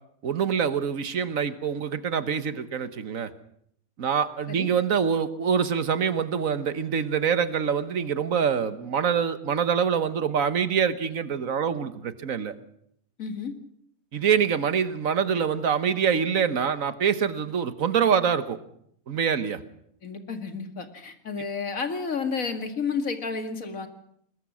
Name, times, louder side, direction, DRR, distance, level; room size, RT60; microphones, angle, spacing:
voice 1, 0.2-3.3 4.0-12.5 14.1-18.6 19.1-19.6, right 7 dB, 75° right, 12 dB, 1.6 m, -25 dB
voice 2, 13.2-13.5 20.0-23.9, left 5 dB, 70° left, 7 dB, 2.5 m, -31 dB
21.0 x 20.5 x 6.3 m, 0.68 s
omnidirectional pair, 1.5 m